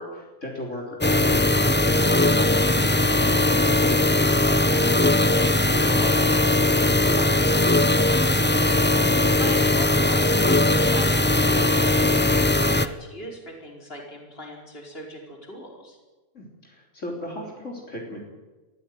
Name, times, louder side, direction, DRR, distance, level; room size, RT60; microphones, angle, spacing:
voice 1, 0.0-7.8 16.3-18.2, left 1 dB, 65° left, -1 dB, 4.2 m, -36 dB
sound 1, 1.0-12.9, left 2 dB, 10° left, 0.6 m, -20 dB
voice 2, 8.4-16.0, equal, 45° left, 1 dB, 4.9 m, -39 dB
22.5 x 14.5 x 9.3 m, 1.2 s
omnidirectional pair, 1.4 m